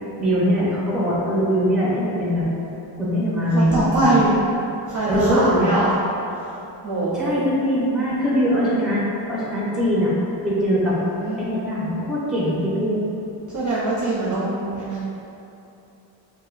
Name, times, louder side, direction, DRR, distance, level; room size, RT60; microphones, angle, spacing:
voice 1, 0.2-2.5 2.9-3.7 4.0-4.2 5.1-5.7 7.1-10.1 10.4-11.0 11.4-13.0, equal, ahead, -8 dB, 1.3 m, -22 dB
voice 2, 3.5-4.4 4.9-5.9 6.3-6.6 6.8-7.3 10.8-11.4 13.5-15.0, right 2 dB, 40° right, -8 dB, 0.8 m, -23 dB
5.5 x 2.6 x 2.6 m, 2.8 s
cardioid pair, 105°, 47 cm